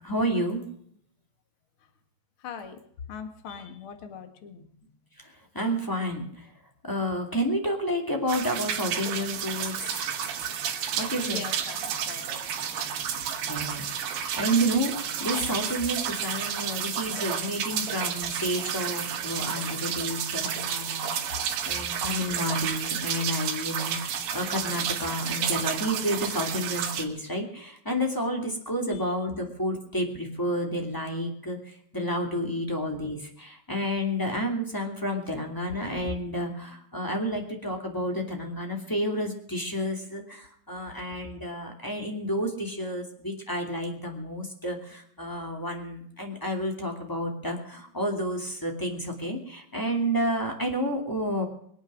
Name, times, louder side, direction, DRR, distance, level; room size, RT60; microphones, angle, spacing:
voice 1, 0.0-0.6 5.2-6.5 6.8-10.1 11.0-11.5 13.4-51.4, equal, 10° left, 2 dB, 1.1 m, -30 dB
voice 2, 2.4-2.8 3.1-4.6 11.2-13.5 19.5-19.9 21.9-22.5 28.9-29.1, left 6 dB, 50° left, 7 dB, 1.6 m, -43 dB
sound 1, 8.3-27.1, right 8 dB, 90° right, 4.1 m, -31 dB
24.5 x 9.0 x 6.3 m, 0.66 s
omnidirectional pair, 5.0 m